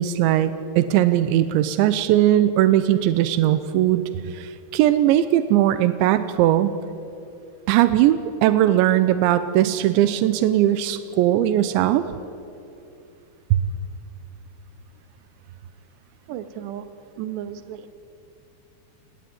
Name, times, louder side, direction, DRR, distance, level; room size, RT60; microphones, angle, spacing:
voice 1, 0.0-6.8 7.7-12.0 13.5-13.6, right 12 dB, 90° right, 11 dB, 3.2 m, -19 dB
voice 2, 16.3-16.9 17.2-17.9, right 11 dB, 75° right, 10 dB, 3.5 m, -34 dB
28.0 x 20.5 x 9.5 m, 2.7 s
omnidirectional pair, 5.2 m